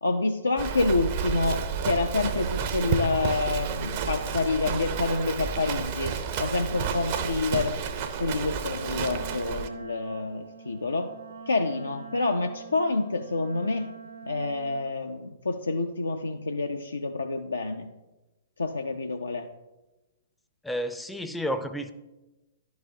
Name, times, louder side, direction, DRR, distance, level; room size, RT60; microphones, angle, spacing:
voice 1, 0.0-7.8 8.2-11.1 11.5-13.9 14.3-17.9 18.6-19.5, left 3 dB, 80° left, 4 dB, 0.4 m, -28 dB
Livestock farm animals working animals, 0.6-9.7, right 6 dB, 45° right, 0.6 m, -31 dB
Wind instrument woodwind instrument, 8.7-14.8, right 6 dB, 80° right, 1.9 m, -44 dB
voice 2, 20.6-21.9, equal, 5° left, 9 dB, 0.4 m, -31 dB
11.0 x 4.8 x 2.7 m, 1.0 s
figure-of-eight pair, 115°, 0 cm